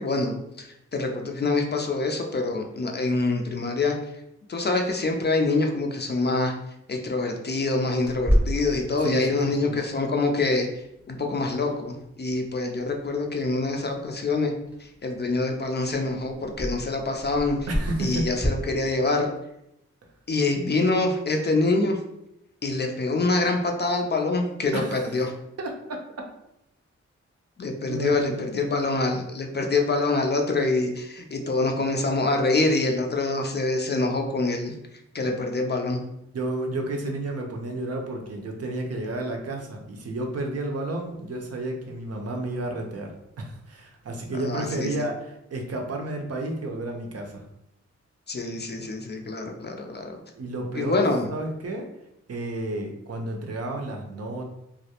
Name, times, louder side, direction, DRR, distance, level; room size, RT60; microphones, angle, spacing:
voice 1, 0.0-3.9 4.5-6.5 6.9-10.7 11.1-14.5 14.8-17.6 18.0-19.3 20.3-22.0 22.6-25.3 27.6-34.7 35.1-36.0 44.4-45.1 48.3-50.2 50.7-51.3, left 3 dB, 35° left, 3 dB, 0.4 m, -25 dB
Clock, 8.0-18.5, equal, 5° right, 0.8 m, -32 dB
voice 2, 17.7-18.3 24.7-25.1 25.6-26.0 27.9-28.4 35.2-35.4 36.3-47.4 50.4-51.0 51.3-51.9 52.3-54.4, right 2 dB, 55° right, 2 dB, 0.5 m, -31 dB
2.3 x 2.0 x 2.8 m, 0.82 s
cardioid pair, 55°, 29 cm